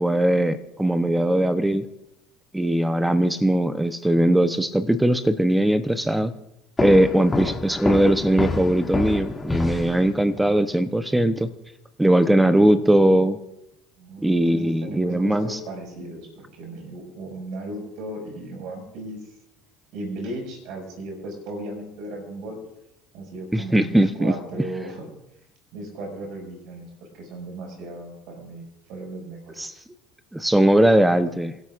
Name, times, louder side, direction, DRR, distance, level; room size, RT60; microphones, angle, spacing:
voice 1, 0.0-1.9 2.5-6.3 6.8-11.5 12.0-13.4 14.2-15.5 23.5-24.3 29.6-29.7 30.3-31.5, right 1 dB, 10° right, 11 dB, 0.9 m, -20 dB
sound 1, 6.8-10.5, left 3 dB, 15° left, 2.4 m, -28 dB
voice 2, 14.0-19.3 19.9-22.6 23.1-25.1 25.7-26.9 27.1-29.8, right 2 dB, 65° right, 1 dB, 6.1 m, -36 dB
28.0 x 12.5 x 2.6 m, 0.87 s
hypercardioid pair, 75°, 0 cm